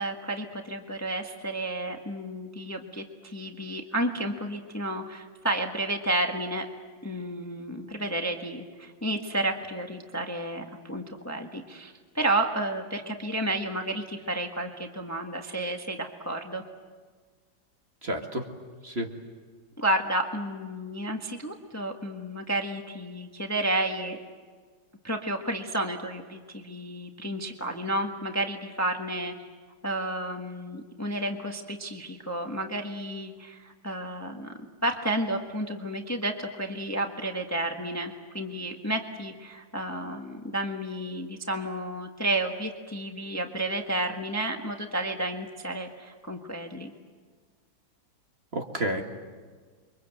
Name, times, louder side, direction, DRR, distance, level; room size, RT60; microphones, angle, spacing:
voice 1, 0.0-6.7 7.0-16.6 19.8-24.2 25.0-29.3 29.8-34.5 34.8-46.9, right 1 dB, 10° left, 3 dB, 1.3 m, -31 dB
voice 2, 18.0-18.5 18.8-19.1 48.5-49.0, right 1 dB, 35° right, 3 dB, 2.1 m, -30 dB
29.5 x 24.0 x 7.8 m, 1.5 s
omnidirectional pair, 2.1 m